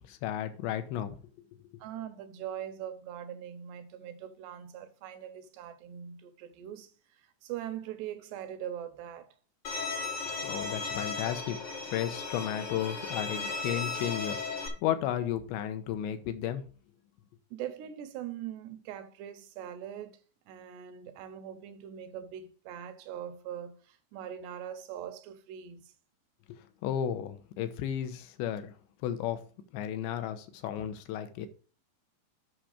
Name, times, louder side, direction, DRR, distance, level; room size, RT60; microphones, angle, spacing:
voice 1, 0.1-1.2 10.4-11.6 11.9-16.6 26.5-28.7 29.0-29.4 29.7-31.5, left 10 dB, 75° left, 3.0 m, -33 dB
voice 2, 1.8-9.4 17.5-20.2 20.5-25.9, right 10 dB, 75° right, 2.7 m, -42 dB
Bowed string instrument, 9.6-14.7, left 4 dB, 60° left, 1.1 m, -36 dB
9.1 x 5.8 x 4.9 m
omnidirectional pair, 5.4 m